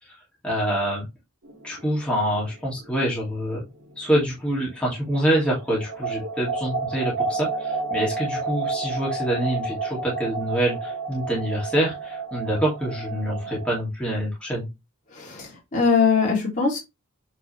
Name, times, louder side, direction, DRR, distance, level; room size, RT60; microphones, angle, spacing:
voice 1, 0.4-1.1 1.6-3.6 4.0-14.7, right 1 dB, 5° left, -5 dB, 2.5 m, -26 dB
sound 1, 1.4-5.0 5.3-13.8, right 3 dB, 65° right, 2.6 m, -31 dB
voice 2, 15.1-16.8, left 5 dB, 35° left, -3 dB, 3.0 m, -21 dB
8.5 x 4.0 x 3.3 m, 0.22 s
head